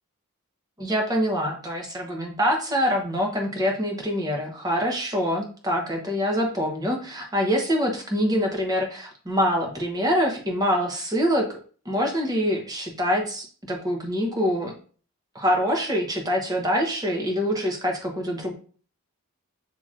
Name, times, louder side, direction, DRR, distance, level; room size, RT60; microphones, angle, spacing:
voice 1, 0.8-11.6 11.8-14.7 15.3-18.5, equal, 15° right, 1 dB, 0.9 m, -25 dB
7.4 x 2.9 x 2.5 m, 0.42 s
head